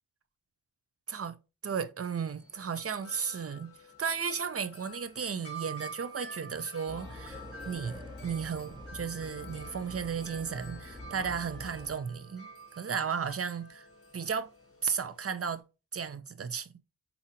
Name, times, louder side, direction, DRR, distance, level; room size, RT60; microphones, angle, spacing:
voice 1, 1.6-3.7 4.0-12.5 12.8-13.9 14.1-14.5 14.8-15.6 15.9-16.8, right 6 dB, 40° right, 0.5 m, -34 dB
Wind chime, 2.3-15.6, right 2 dB, 40° left, 0.9 m, -49 dB
sound 1, 6.9-12.0, left 1 dB, 10° right, 1.1 m, -46 dB
4.1 x 2.8 x 2.6 m
cardioid pair, 45°, 37 cm